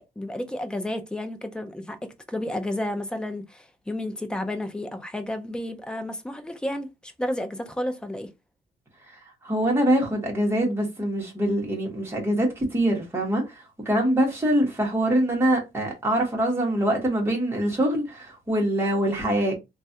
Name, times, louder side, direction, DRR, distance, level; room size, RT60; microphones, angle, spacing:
voice 1, 0.0-2.0 2.3-8.3, left 1 dB, 5° left, 0.4 m, -31 dB
voice 2, 9.1-19.5, right 1 dB, 15° right, 1.2 m, -24 dB
3.1 x 2.4 x 2.7 m
wide cardioid pair, 160°, 17 cm